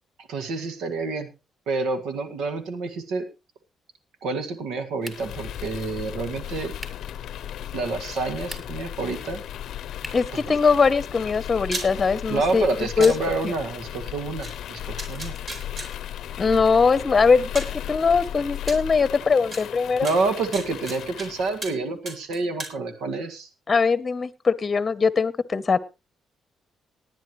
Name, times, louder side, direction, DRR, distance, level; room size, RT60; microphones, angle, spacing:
voice 1, 0.2-1.3 1.7-3.3 4.2-6.7 7.7-9.4 10.5-10.6 12.3-15.3 20.0-23.5, right 3 dB, 80° right, 8 dB, 1.9 m, -28 dB
sound 1, 5.0-21.7, left 11 dB, 75° left, 0.6 m, -36 dB
sound 2, 5.0-5.5 6.8-7.1 8.3-8.9 10.0-10.4, equal, 10° right, 2.2 m, -41 dB
voice 2, 10.1-13.1 13.4-13.5 16.4-20.1 23.7-25.8, left 5 dB, 30° left, 16 dB, 0.9 m, -21 dB
sound 3, 11.7-11.9 13.0-13.1 14.4-14.5 15.0-15.9 16.9-17.0 17.5-17.8 18.7-18.8 19.5-19.6 20.0-21.3 21.6-21.8 22.0-22.7, right 2 dB, 40° right, 4.4 m, -33 dB
19.0 x 10.0 x 3.2 m, 0.28 s
cardioid pair, 90°, 0 cm